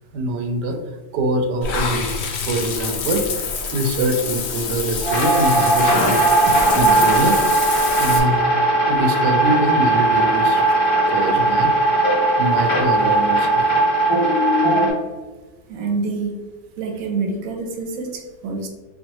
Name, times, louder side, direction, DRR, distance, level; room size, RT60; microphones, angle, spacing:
voice 1, 0.1-0.8 1.1-6.2 6.8-8.5 8.9-10.8 11.1-11.7 12.4-13.7, right 1 dB, 85° right, 4 dB, 1.2 m, -24 dB
Water / Bathtub (filling or washing), 1.6-8.2, left 5 dB, 80° left, 0.6 m, -27 dB
sound 1, 5.0-14.9, right 2 dB, 30° left, 1.1 m, -18 dB
voice 2, 15.7-16.4 16.8-18.7, right 4 dB, 70° right, 2 dB, 1.0 m, -26 dB
4.5 x 2.3 x 2.8 m, 1.2 s
omnidirectional pair, 1.8 m